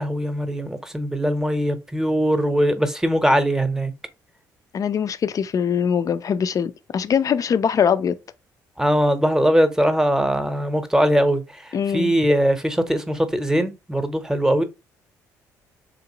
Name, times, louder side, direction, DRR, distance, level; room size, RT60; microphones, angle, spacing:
voice 1, 0.0-3.9 8.8-11.4 11.9-14.6, equal, 5° right, 0.8 m, -21 dB
voice 2, 4.7-8.2 11.7-12.2, left 7 dB, 45° left, 0.4 m, -22 dB
3.5 x 2.8 x 2.8 m
hypercardioid pair, 55°, 8 cm